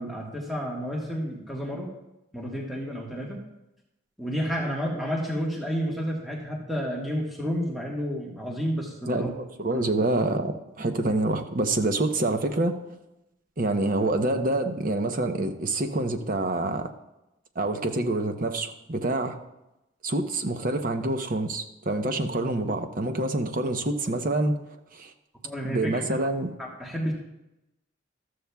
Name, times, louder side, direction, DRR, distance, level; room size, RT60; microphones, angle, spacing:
voice 1, 0.0-1.9 2.3-3.4 4.2-9.3 9.7-9.9 25.4-26.0 26.6-27.1, equal, ahead, -3 dB, 1.5 m, -31 dB
voice 2, 9.1-12.8 13.6-16.9 17.6-19.4 20.0-24.6 24.9-25.1 25.6-26.5, right 2 dB, 45° right, 6 dB, 0.8 m, -27 dB
14.0 x 13.0 x 2.3 m, 0.92 s
head